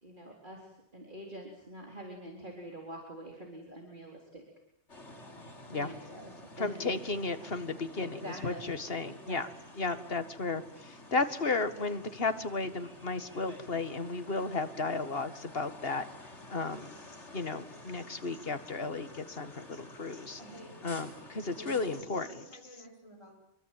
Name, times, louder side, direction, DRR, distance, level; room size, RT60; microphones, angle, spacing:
voice 1, 0.0-4.4 5.7-7.0 7.4-7.6 8.0-8.7 9.0-9.5, right 1 dB, 45° right, 0 dB, 4.3 m, -46 dB
sound 1, 4.9-22.0, left 1 dB, 90° left, 4.5 m, -51 dB
voice 2, 6.6-9.5 9.8-16.1 16.5-16.9 17.3-20.4 20.8-22.3, left 3 dB, 55° left, 10 dB, 2.0 m, -34 dB
voice 3, 20.4-20.8 21.6-23.3, equal, 25° left, 2 dB, 8.1 m, -50 dB
26.0 x 23.5 x 9.1 m, 0.75 s
omnidirectional pair, 1.2 m